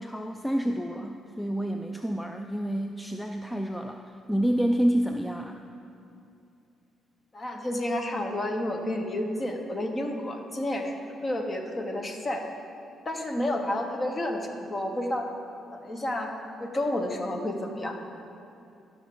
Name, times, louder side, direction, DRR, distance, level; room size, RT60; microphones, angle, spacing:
voice 1, 0.0-4.0 4.3-5.6, equal, 5° left, 5 dB, 0.4 m, -28 dB
voice 2, 7.3-10.9 11.2-12.5 13.0-15.3 15.7-18.0, left 1 dB, 30° left, 3 dB, 1.1 m, -30 dB
14.0 x 6.3 x 3.9 m, 2.6 s
cardioid pair, 90°, 0 cm